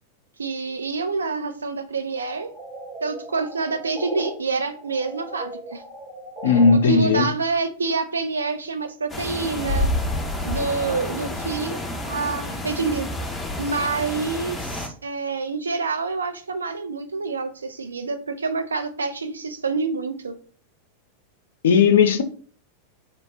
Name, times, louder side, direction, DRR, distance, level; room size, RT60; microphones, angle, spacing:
voice 1, 0.4-2.5 3.0-5.8 6.5-9.9 10.4-13.1 13.6-20.4, right 4 dB, 75° right, 0.3 m, -27 dB
sound 1, 2.2-4.3 4.7-6.7, right 1 dB, 35° right, 0.8 m, -37 dB
voice 2, 6.4-7.3 21.6-22.2, left 5 dB, 60° left, 0.3 m, -16 dB
sound 2, 9.1-14.9, left 1 dB, 10° left, 0.6 m, -29 dB
3.1 x 2.0 x 2.4 m
figure-of-eight pair, 90°, 0 cm